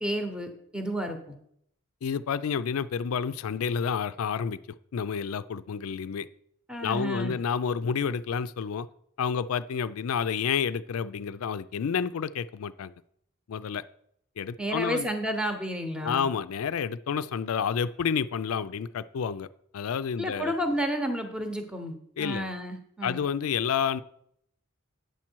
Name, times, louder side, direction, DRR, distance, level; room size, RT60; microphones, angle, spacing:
voice 1, 0.0-1.2 6.7-7.3 14.6-16.3 20.2-23.2, equal, 5° right, 5 dB, 0.9 m, -31 dB
voice 2, 2.0-4.6 4.9-6.3 6.8-8.9 9.2-12.9 13.5-13.8 14.4-15.1 16.0-19.5 19.7-20.5 22.2-22.5 23.0-24.0, left 7 dB, 90° left, 14 dB, 0.4 m, -29 dB
9.3 x 7.3 x 4.5 m, 0.70 s
head